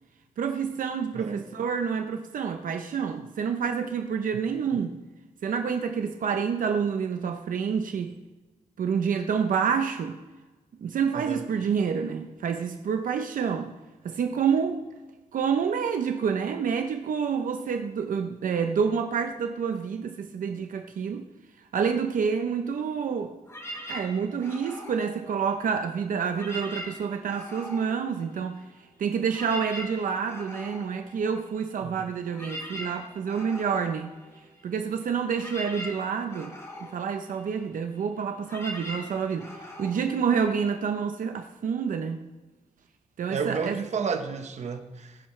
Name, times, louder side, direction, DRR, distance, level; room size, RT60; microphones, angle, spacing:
voice 1, 0.4-5.0 5.4-8.1 8.8-10.2 10.8-13.7 14.0-14.8 15.3-21.3 21.7-23.3 23.9-28.6 29.0-34.1 34.6-36.5 36.9-42.2 43.2-43.8, right 6 dB, 85° right, 0.8 m, -28 dB
voice 2, 1.1-1.5 11.1-11.4 31.8-32.1 43.3-45.2, right 5 dB, 60° right, 1.0 m, -32 dB
sound 1, 23.4-25.9 26.2-28.8 29.1-41.0, equal, 20° left, 2.2 m, -42 dB
20.0 x 10.5 x 3.3 m
wide cardioid pair, 165°, 13 cm